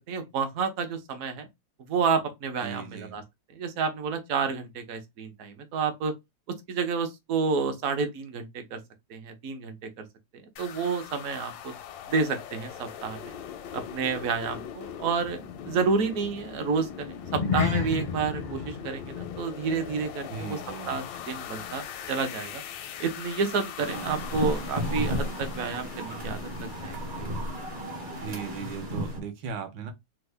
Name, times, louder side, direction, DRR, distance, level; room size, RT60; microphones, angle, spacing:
voice 1, 0.1-1.5 1.8-3.2 3.5-6.1 6.7-8.8 9.1-10.1 10.6-11.7 12.1-13.4 13.7-15.4 15.7-20.6 20.9-22.6 23.0-27.3, right 5 dB, 60° right, 0.9 m, -30 dB
voice 2, 2.6-3.2 20.3-21.0 28.2-29.9, right 7 dB, 80° right, 1.4 m, -37 dB
sound 1, 10.6-29.1, left 9 dB, 85° left, 1.3 m, -42 dB
sound 2, 17.2-21.8 22.1-22.4 22.9-23.0, left 6 dB, 50° left, 0.5 m, -33 dB
sound 3, 23.8-29.2, equal, 45° right, 0.6 m, -33 dB
3.5 x 2.1 x 3.2 m
omnidirectional pair, 2.0 m